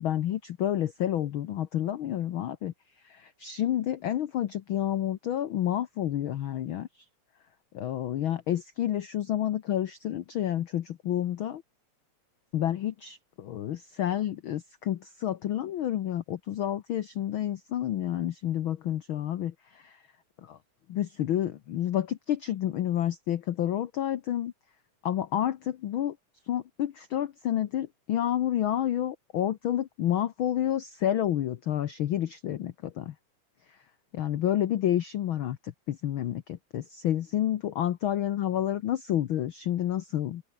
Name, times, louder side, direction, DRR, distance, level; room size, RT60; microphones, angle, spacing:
voice 1, 0.0-2.7 3.0-6.9 7.7-11.6 12.5-20.0 20.4-20.6 20.9-24.5 25.0-26.2 26.5-33.1 34.1-40.4, left 11 dB, 75° left, 1.1 m, -29 dB
open air
omnidirectional pair, 3.5 m